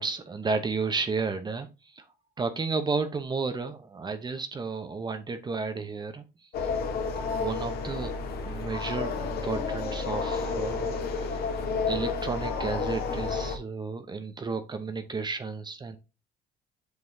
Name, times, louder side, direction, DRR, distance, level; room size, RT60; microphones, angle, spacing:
voice 1, 0.0-1.7 2.4-6.2 7.3-8.1 8.4-11.3 11.8-16.0, right 4 dB, 25° right, 0.8 m, -32 dB
sound 1, 6.5-13.6, left 4 dB, 65° left, 1.5 m, -31 dB
7.9 x 5.3 x 2.7 m
cardioid pair, 110°, 17 cm